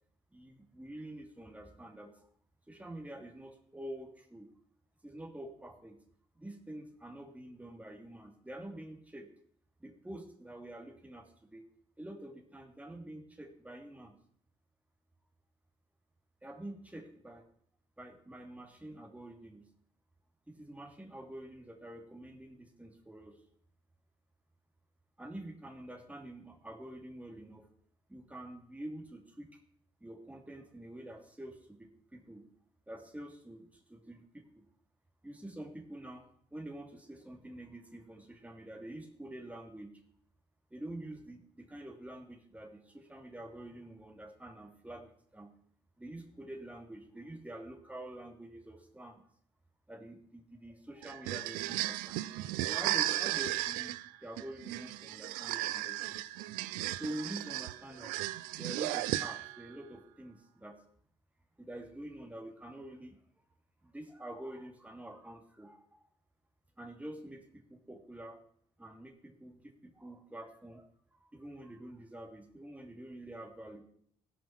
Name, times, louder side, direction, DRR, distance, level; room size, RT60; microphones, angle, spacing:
voice 1, 0.3-2.3 2.7-4.5 5.0-6.0 6.4-9.3 9.8-11.6 12.0-14.2 16.4-17.5 18.0-19.6 20.5-23.4 25.2-27.7 28.1-29.6 30.0-32.4 32.9-34.6 35.2-36.2 36.5-40.0 40.7-45.5 46.0-49.2 49.9-52.2 52.7-53.9 54.2-56.2 57.0-58.2 58.6-60.8 61.6-63.2 63.8-66.1 66.8-68.4 68.8-73.8, right 1 dB, 10° right, 4 dB, 2.4 m, -47 dB
sound 1, 51.0-59.7, right 16 dB, 85° right, 0.4 m, -35 dB
16.0 x 5.8 x 5.9 m, 0.64 s
hypercardioid pair, 50°, 14 cm